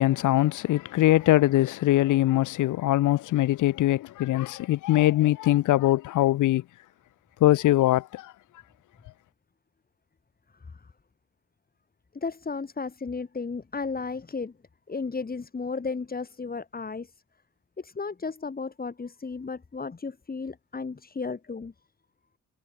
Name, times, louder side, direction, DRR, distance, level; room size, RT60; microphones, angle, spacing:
voice 1, 0.0-6.6 7.4-8.3, left 15 dB, 80° left, 1.4 m, -22 dB
voice 2, 12.1-14.5 14.9-17.1 17.8-21.7, left 4 dB, 30° left, 6.4 m, -34 dB
cardioid pair, 90°, 30 cm